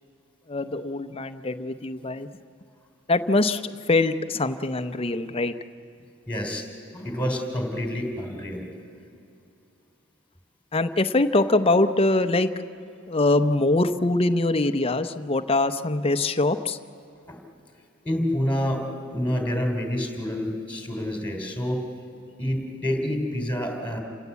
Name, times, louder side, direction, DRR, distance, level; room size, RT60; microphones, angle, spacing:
voice 1, 0.5-2.3 3.1-5.5 10.7-12.5 13.1-16.8, left 2 dB, 25° left, 9 dB, 0.7 m, -23 dB
voice 2, 6.3-6.7 6.9-8.6 17.3-17.4 18.0-21.8 22.4-24.0, equal, 5° left, 2 dB, 3.2 m, -28 dB
28.0 x 16.5 x 8.4 m, 2.7 s
head